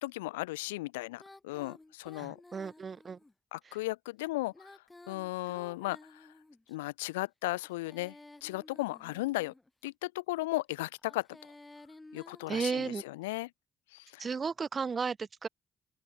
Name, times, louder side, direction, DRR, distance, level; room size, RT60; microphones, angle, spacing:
voice 1, 0.0-2.4 3.5-4.5 5.1-6.3 6.7-8.1 8.4-9.5 9.8-11.3 12.1-13.5 13.9-14.3, left 20 dB, 80° left, 0.6 m, -36 dB
Female singing, 1.2-3.3 4.4-6.8 7.5-9.7 11.0-13.2, left 2 dB, 20° left, 5.7 m, -54 dB
voice 2, 2.2-3.2 12.5-13.0 14.2-15.5, right 5 dB, 40° right, 1.9 m, -34 dB
open air
hypercardioid pair, 45°, 0 cm